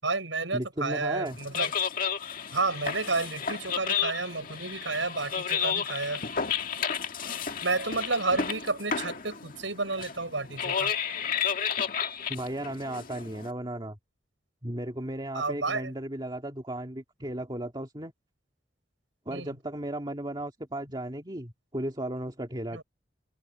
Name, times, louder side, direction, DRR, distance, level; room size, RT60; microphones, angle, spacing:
voice 1, 0.0-1.7 2.5-6.2 7.6-10.9 15.3-15.9 19.3-19.6 22.7-22.8, right 3 dB, 85° right, 8.0 m, -31 dB
voice 2, 0.5-1.4 12.3-14.0 14.6-18.1 19.3-22.8, right 1 dB, 25° right, 2.3 m, -35 dB
sound 1, 1.3-13.5, left 7 dB, 50° left, 1.9 m, -32 dB
head